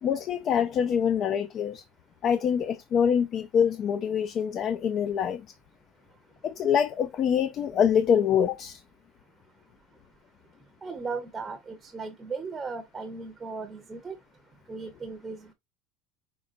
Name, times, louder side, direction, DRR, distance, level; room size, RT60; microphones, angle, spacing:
voice 1, 0.0-1.8 2.2-5.5 6.4-8.8, left 8 dB, 40° left, 0.4 m, -25 dB
voice 2, 10.8-14.2 14.7-15.5, right 4 dB, 20° right, 0.7 m, -37 dB
5.2 x 3.4 x 2.5 m
supercardioid pair, 130°, 0 cm